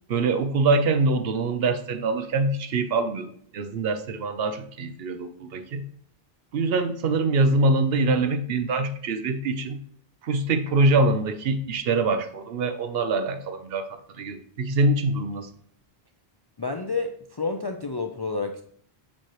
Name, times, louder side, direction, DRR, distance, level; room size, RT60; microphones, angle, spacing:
voice 1, 0.1-5.8 6.5-9.8 10.2-15.5, right 3 dB, 70° right, 9 dB, 0.9 m, -24 dB
voice 2, 16.6-18.6, left 4 dB, 45° left, 5 dB, 0.3 m, -29 dB
7.4 x 6.4 x 3.0 m, 0.63 s
omnidirectional pair, 1.0 m